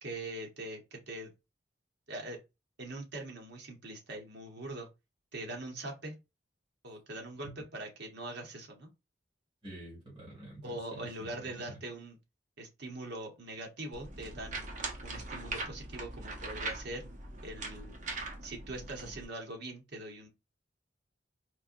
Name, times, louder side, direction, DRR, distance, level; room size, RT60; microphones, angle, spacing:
voice 1, 0.0-1.3 2.1-2.4 2.8-4.9 5.3-6.1 6.8-8.9 10.6-12.2 12.6-14.7 15.0-17.0 17.4-17.9 18.4-20.3, right 2 dB, 65° right, 1.1 m, -42 dB
voice 2, 9.6-11.8, right 1 dB, 30° right, 2.3 m, -48 dB
sound 1, 13.9-19.2, right 2 dB, 45° right, 0.8 m, -41 dB
4.3 x 2.7 x 2.5 m
head